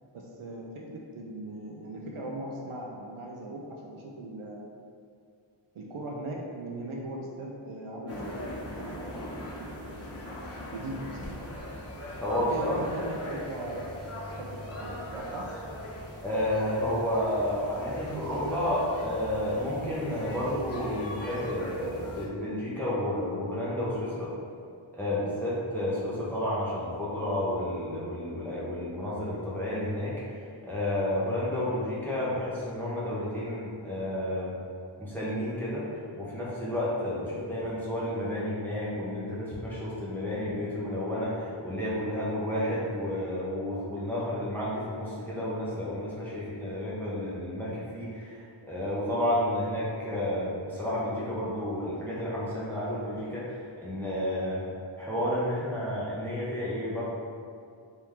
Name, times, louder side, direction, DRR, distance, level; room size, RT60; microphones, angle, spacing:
voice 1, 0.1-4.7 5.7-9.4 9.7-10.1 10.6-11.5 12.4-13.9 14.3-15.5, right 1 dB, 80° right, -1 dB, 0.6 m, -39 dB
sound 1, 8.1-22.2, left 1 dB, 30° left, 1.0 m, -40 dB
voice 2, 12.2-12.8 16.2-24.3 24.9-30.1 30.6-34.5 35.0-54.7 55.0-57.0, left 1 dB, 5° left, -8 dB, 0.9 m, -31 dB
3.4 x 2.9 x 3.5 m, 2.3 s
wide cardioid pair, 45°, 49 cm